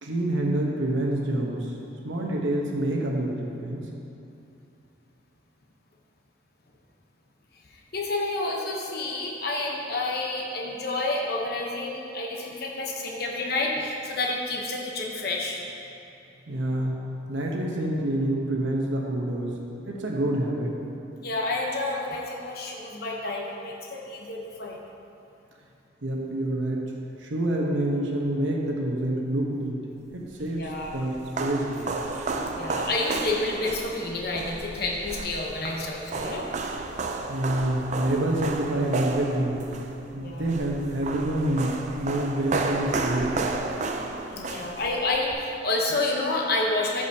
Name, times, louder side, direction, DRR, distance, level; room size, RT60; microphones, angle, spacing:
voice 1, 0.0-1.8 2.0-3.8 16.5-17.0 17.3-20.7 26.0-26.9 27.2-29.8 30.1-32.0 37.3-39.6 40.1-43.4, right 1 dB, 75° right, -1 dB, 0.9 m, -27 dB
voice 2, 7.9-15.6 21.2-24.8 30.6-30.9 32.5-36.4 40.2-40.5 44.3-47.1, left 2 dB, 50° left, -2 dB, 0.9 m, -29 dB
sound 1, 30.3-45.3, right 3 dB, 35° right, 0.4 m, -32 dB
13.5 x 5.0 x 2.8 m, 2.8 s
head